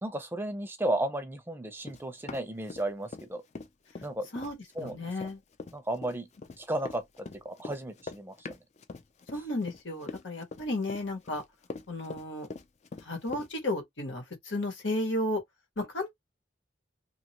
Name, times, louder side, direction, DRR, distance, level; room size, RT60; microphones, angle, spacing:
voice 1, 0.0-3.4 4.0-4.3 4.8-5.1 5.7-6.3 6.6-8.6, right 1 dB, 10° right, 0.6 m, -34 dB
Run, 1.8-3.3 3.5-13.5, left 3 dB, 35° left, 0.4 m, -43 dB
voice 2, 4.3-5.4 9.3-11.4 11.9-12.5 13.0-15.4 15.8-16.1, left 1 dB, 90° left, 1.5 m, -33 dB
2.8 x 2.5 x 2.9 m
head